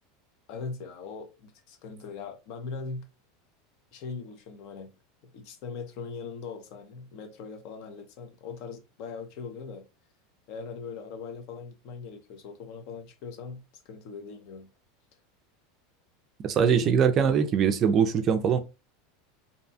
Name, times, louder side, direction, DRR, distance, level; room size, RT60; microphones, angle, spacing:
voice 1, 0.5-3.1 3.9-4.9 5.2-9.9 10.5-14.7 16.5-17.0, left 5 dB, 55° left, 0.6 m, -40 dB
voice 2, 16.4-18.6, right 7 dB, 30° right, 0.3 m, -22 dB
2.6 x 2.2 x 2.6 m
supercardioid pair, 145°, 0 cm